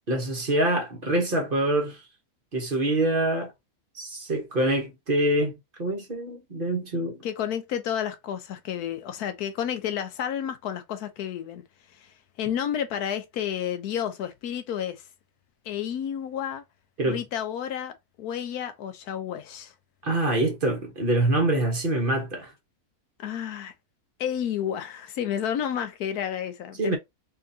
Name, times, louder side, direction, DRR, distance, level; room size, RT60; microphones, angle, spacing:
voice 1, 0.1-2.0 2.5-3.5 3.9-7.2 17.0-17.2 20.0-22.5 26.8-27.0, right 1 dB, 40° right, 1.1 m, -25 dB
voice 2, 7.2-11.6 11.9-15.0 15.6-16.6 17.1-19.7 23.2-23.7 24.2-27.0, left 9 dB, 90° left, 1.2 m, -31 dB
3.8 x 3.4 x 2.7 m
omnidirectional pair, 1.6 m